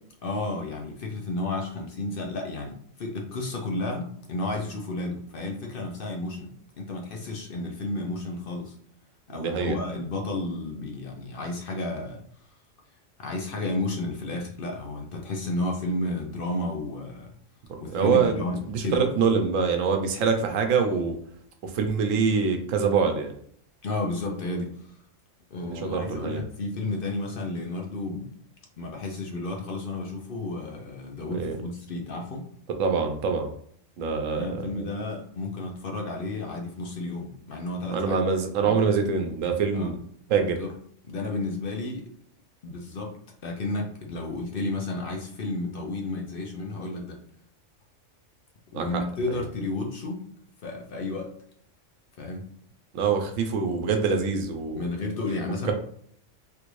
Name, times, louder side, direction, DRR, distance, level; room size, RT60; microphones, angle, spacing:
voice 1, 0.2-8.7 9.3-12.2 13.2-17.3 17.8-19.0 23.8-25.0 25.5-28.3 28.8-32.5 34.3-38.2 38.6-38.8 39.7-40.0 40.4-40.7 41.0-42.1 42.6-43.2 43.4-47.2 48.7-50.3 50.6-51.3 52.2-52.4 54.8-55.7, left 2 dB, 55° left, 1 dB, 0.7 m, -32 dB
voice 2, 9.4-9.8 17.9-21.2 21.6-23.3 25.7-26.4 31.3-31.5 32.8-33.5 34.0-34.9 37.9-40.0 40.3-40.6 48.7-48.8 49.3-49.4 52.9-54.9 55.6-55.7, right 5 dB, 90° right, 5 dB, 1.0 m, -25 dB
3.3 x 2.5 x 3.0 m, 0.64 s
omnidirectional pair, 1.3 m